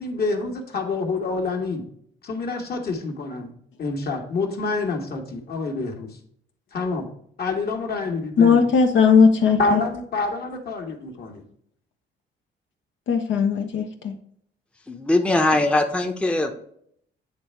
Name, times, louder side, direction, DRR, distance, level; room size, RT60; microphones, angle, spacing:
voice 1, 0.0-1.8 2.2-3.5 3.8-6.1 6.7-7.0 7.4-8.6 9.6-11.4, left 3 dB, 55° left, 3 dB, 1.5 m, -27 dB
voice 2, 8.4-9.8 13.1-14.1, left 5 dB, 75° left, 3 dB, 0.8 m, -18 dB
voice 3, 14.9-16.5, left 2 dB, 5° left, 4 dB, 0.7 m, -21 dB
8.1 x 3.3 x 4.5 m, 0.66 s
cardioid pair, 90°, 20 cm